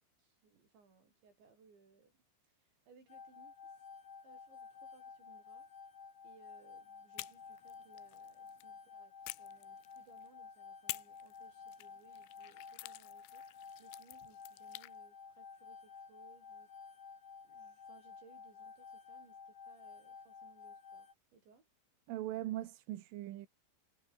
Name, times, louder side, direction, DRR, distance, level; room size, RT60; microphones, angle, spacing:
voice 1, 0.2-2.2 2.4-3.9 4.2-5.7 6.2-13.4 13.8-16.7 17.4-21.7, right 5 dB, 65° right, 9.7 m, -65 dB
sound 1, 3.1-21.1, left 5 dB, 55° left, 6.8 m, -53 dB
sound 2, 7.1-8.7 9.2-10.3 10.9-14.9, left 21 dB, 80° left, 2.9 m, -49 dB
voice 2, 22.1-23.5, right 14 dB, 80° right, 4.0 m, -40 dB
omnidirectional pair, 5.6 m